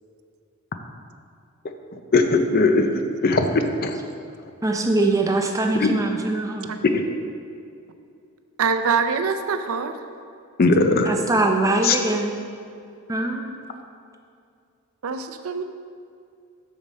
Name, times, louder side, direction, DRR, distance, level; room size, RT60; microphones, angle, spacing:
voice 1, 2.1-2.9 3.2-3.5 3.8-4.0 5.8-5.9 6.9-7.0 10.6-11.1 11.8-12.0, left 3 dB, 45° left, 6 dB, 0.5 m, -18 dB
voice 2, 4.6-6.7 11.1-12.3 13.1-13.5, right 2 dB, 15° right, 3 dB, 0.5 m, -22 dB
voice 3, 8.6-9.9 15.0-15.6, right 5 dB, 70° right, 8 dB, 0.5 m, -24 dB
7.0 x 6.5 x 4.2 m, 2.4 s
head